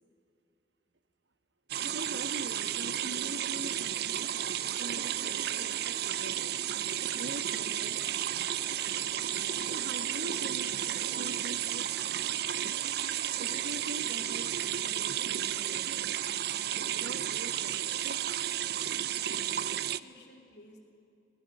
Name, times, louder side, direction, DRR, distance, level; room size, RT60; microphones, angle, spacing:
sound 1, 1.7-20.0, right 11 dB, 60° right, 0.5 m, -33 dB
voice 1, 1.8-6.9 7.1-8.6 9.6-12.3 13.4-16.1 16.8-18.2 18.5-18.7, right 1 dB, 80° right, 9 dB, 1.3 m, -45 dB
sound 2, 2.1-11.3, right 1 dB, 35° right, 2.5 m, -54 dB
voice 2, 19.1-20.8, left 1 dB, 65° left, 1 dB, 3.6 m, -55 dB
21.5 x 19.0 x 6.7 m, 2.5 s
head